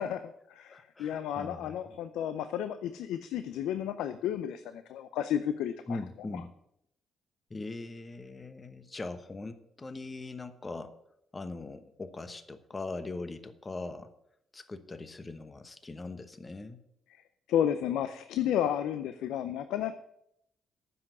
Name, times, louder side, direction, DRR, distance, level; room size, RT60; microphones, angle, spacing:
voice 1, 0.0-6.0 6.3-6.4 17.1-17.2 17.5-20.0, left 10 dB, 90° left, 11 dB, 0.5 m, -32 dB
voice 2, 0.7-1.7 5.9-6.5 7.5-11.0 11.3-14.1 14.5-16.8, left 3 dB, 25° left, 11 dB, 1.0 m, -41 dB
9.5 x 6.1 x 8.0 m, 0.76 s
cardioid pair, 90°, 0 cm